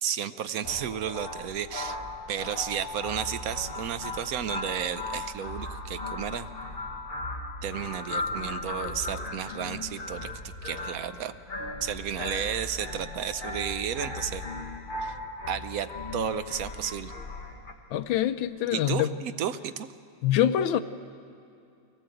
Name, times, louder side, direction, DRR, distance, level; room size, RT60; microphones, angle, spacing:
voice 1, 0.0-2.0 2.3-6.5 7.6-10.3 10.6-11.4 11.8-14.4 15.0-15.1 15.5-17.1 18.7-19.9, right 8 dB, 65° right, 11 dB, 0.9 m, -32 dB
sound 1, 0.6-17.7, left 2 dB, 30° left, 1.5 m, -37 dB
voice 2, 17.9-19.1 20.2-20.8, left 11 dB, 80° left, 12 dB, 1.4 m, -25 dB
24.0 x 18.0 x 7.9 m, 2.6 s
omnidirectional pair, 2.1 m